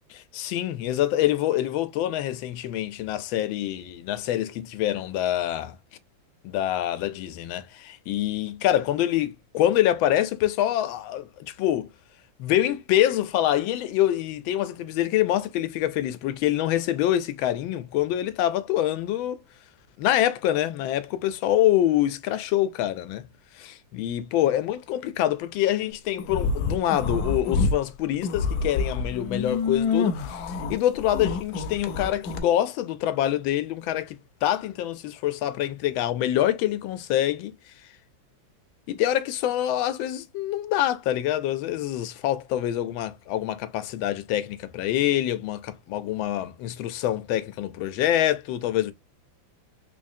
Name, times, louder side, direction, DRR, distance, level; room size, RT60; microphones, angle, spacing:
voice 1, 0.3-5.8 6.4-11.9 12.4-19.4 20.0-23.3 23.6-37.5 38.9-48.9, left 12 dB, 90° left, 1.4 m, -25 dB
sound 1, 26.2-27.8 28.1-32.4, left 4 dB, 70° left, 1.0 m, -27 dB
3.7 x 3.2 x 2.6 m
omnidirectional pair, 2.1 m